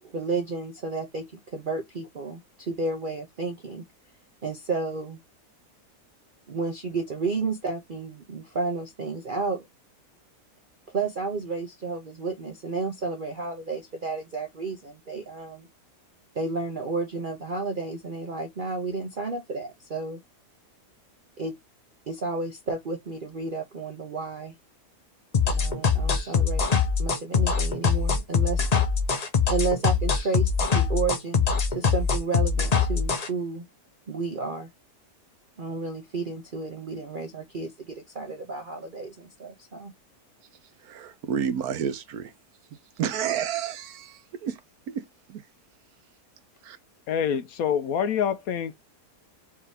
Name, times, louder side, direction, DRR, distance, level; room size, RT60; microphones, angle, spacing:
voice 1, 0.0-3.8 4.4-5.2 6.5-9.7 10.9-15.7 16.4-20.2 21.4-21.5 22.1-24.5 25.5-26.7 27.0-28.7 29.5-31.4 31.7-33.7 34.1-34.7 35.6-39.9, right 4 dB, 55° right, 0.5 m, -32 dB
sound 1, 25.3-33.3, left 5 dB, 45° left, 0.5 m, -23 dB
voice 2, 40.8-42.3 42.7-44.6 44.9-45.4 46.6-46.8, right 8 dB, 70° right, 1.2 m, -31 dB
voice 3, 47.1-48.8, left 8 dB, 70° left, 1.0 m, -26 dB
4.7 x 2.8 x 3.4 m
omnidirectional pair, 1.7 m